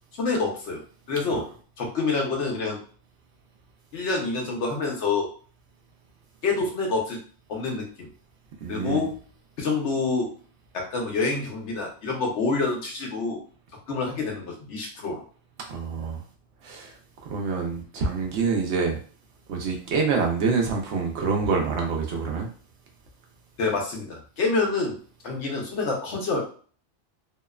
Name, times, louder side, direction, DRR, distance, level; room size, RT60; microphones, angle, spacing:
voice 1, 0.2-0.8 1.1-1.5 1.8-2.8 3.9-5.3 6.4-7.2 7.5-8.1 8.7-9.2 9.6-10.3 10.7-13.4 13.9-15.2 23.6-25.0 25.2-26.5, left 3 dB, 75° left, 0 dB, 1.0 m, -27 dB
voice 2, 8.6-9.1 15.7-16.2 16.6-17.0 17.3-19.0 19.5-22.5, right 4 dB, 70° right, 1 dB, 0.9 m, -26 dB
2.8 x 2.1 x 2.3 m, 0.42 s
omnidirectional pair, 1.2 m